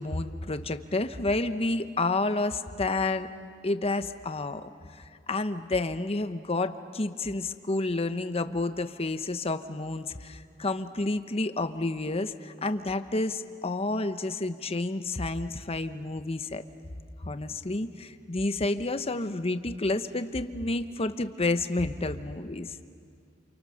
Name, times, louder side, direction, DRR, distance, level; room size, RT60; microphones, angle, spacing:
voice 1, 0.0-3.3 3.6-4.7 5.0-16.6 17.2-22.8, left 2 dB, 30° left, 10 dB, 0.9 m, -30 dB
29.0 x 28.5 x 6.5 m, 2.3 s
head